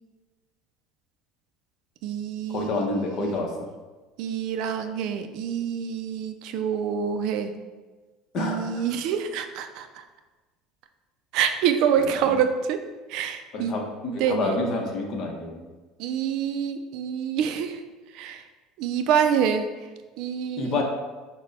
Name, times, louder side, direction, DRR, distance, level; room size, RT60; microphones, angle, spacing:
voice 1, 2.0-3.5 4.2-7.5 8.4-10.0 11.3-12.8 13.1-13.7 14.2-14.6 16.0-17.8 18.1-18.4 18.8-19.7 20.2-20.8, right 8 dB, 65° right, 8 dB, 0.4 m, -26 dB
voice 2, 2.5-3.5 8.3-8.8 12.0-12.3 13.5-15.7 20.6-20.8, left 3 dB, 50° left, 1 dB, 0.9 m, -28 dB
5.9 x 2.2 x 4.0 m, 1.3 s
supercardioid pair, 130°, 0 cm